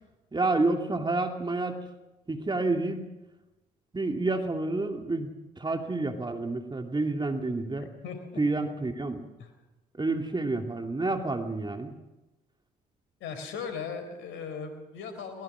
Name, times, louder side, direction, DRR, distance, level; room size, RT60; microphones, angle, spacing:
voice 1, 0.3-1.9 2.3-3.0 3.9-5.3 5.6-7.9 8.4-9.3 10.0-11.9, right 2 dB, 20° right, 4 dB, 2.5 m, -29 dB
voice 2, 7.8-8.4 9.4-9.5 13.2-15.4, left 5 dB, 70° left, 8 dB, 4.1 m, -38 dB
23.0 x 20.0 x 6.2 m, 1.0 s
hypercardioid pair, 50°, 21 cm